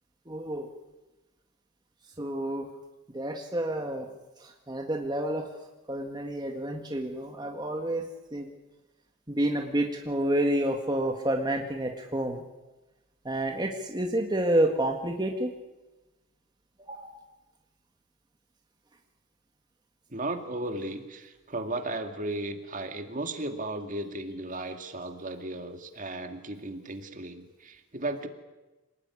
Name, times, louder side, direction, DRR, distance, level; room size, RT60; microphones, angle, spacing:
voice 1, 0.3-0.7 2.2-2.7 3.1-4.1 4.4-5.5 5.9-8.1 8.3-8.5 9.3-12.4 13.3-15.5 16.8-17.2, right 1 dB, 20° right, 2 dB, 1.8 m, -29 dB
voice 2, 20.1-28.3, right 2 dB, 35° right, 6 dB, 2.2 m, -35 dB
27.0 x 19.0 x 9.8 m, 1.1 s
head